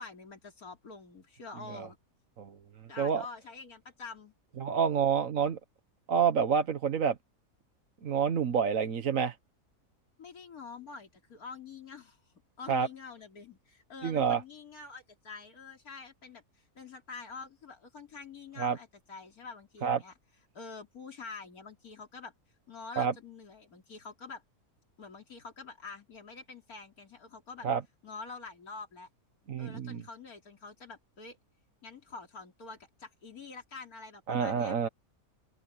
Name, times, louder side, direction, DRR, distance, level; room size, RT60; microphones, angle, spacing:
voice 1, 0.0-2.0 2.9-4.3 10.2-12.2 12.6-16.4 16.8-20.1 20.5-22.3 22.7-24.4 25.0-27.7 28.0-29.1 29.6-31.4 31.8-34.7, left 4 dB, 75° left, 3.5 m, -46 dB
voice 2, 4.6-5.6 6.1-7.1 8.0-9.3 12.7-12.9 14.0-14.4 18.6-18.8 19.8-20.0 23.0-23.1 27.6-27.8 29.5-30.0 34.3-34.9, right 7 dB, 65° right, 1.6 m, -28 dB
open air
omnidirectional pair, 1.6 m